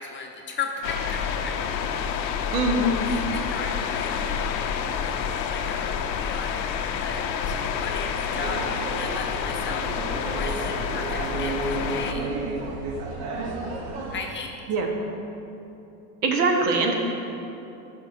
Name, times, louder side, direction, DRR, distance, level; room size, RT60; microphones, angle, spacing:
voice 1, 0.0-1.5 3.0-6.6 7.0-9.8 10.3-12.3 14.1-14.6, left 4 dB, 25° left, 1 dB, 0.7 m, -36 dB
sound 1, 0.8-12.1, left 7 dB, 80° left, 0.7 m, -28 dB
voice 2, 2.5-2.9 14.7-14.9 16.2-16.9, right 2 dB, 70° right, 2 dB, 1.2 m, -22 dB
sound 2, 8.3-14.2, right 3 dB, 50° right, 1.1 m, -32 dB
12.0 x 5.6 x 2.6 m, 2.8 s
hypercardioid pair, 95°, 50 cm